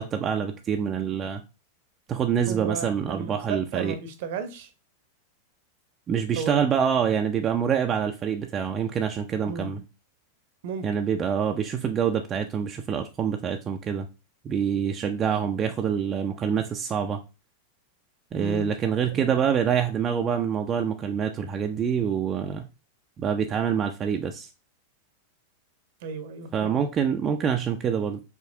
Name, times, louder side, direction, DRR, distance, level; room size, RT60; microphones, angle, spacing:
voice 1, 0.0-1.4 2.1-3.9 6.1-9.8 10.8-14.1 14.4-17.2 18.3-22.7 23.2-24.5 26.5-28.2, right 7 dB, 25° right, 0.4 m, -26 dB
voice 2, 2.5-4.7 6.3-6.8 9.4-9.7 10.6-10.9 18.4-18.7 19.1-19.4 26.0-26.8, right 5 dB, 50° right, 0.8 m, -34 dB
4.8 x 3.2 x 2.7 m
figure-of-eight pair, 90°, 0 cm